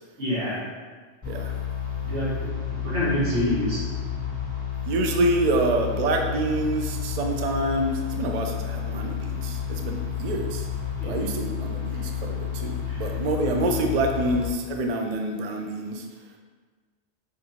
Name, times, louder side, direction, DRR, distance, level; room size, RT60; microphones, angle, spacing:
voice 1, 0.2-0.6 2.0-3.8 11.0-11.2 11.9-12.0 12.9-13.1, equal, 80° right, -10 dB, 1.9 m, -27 dB
sound 1, 1.2-14.5, left 8 dB, 15° right, 1.4 m, -31 dB
voice 2, 4.9-10.7 11.0-16.1, right 2 dB, 60° right, 3 dB, 0.4 m, -27 dB
5.8 x 2.8 x 2.8 m, 1.4 s
omnidirectional pair, 1.1 m